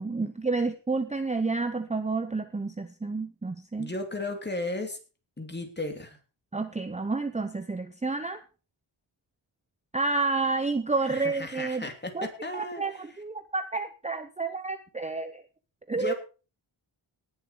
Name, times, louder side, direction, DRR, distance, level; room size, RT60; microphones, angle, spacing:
voice 1, 0.0-3.9 6.5-8.4 9.9-11.9 12.1-12.3 12.5-15.4 15.9-16.1, right 3 dB, 15° right, 9 dB, 0.8 m, -30 dB
voice 2, 3.8-5.0 5.4-6.2 11.0-12.8 15.9-16.1, left 2 dB, 20° left, 4 dB, 3.0 m, -34 dB
19.0 x 7.4 x 5.0 m, 0.35 s
wide cardioid pair, 120°, 47 cm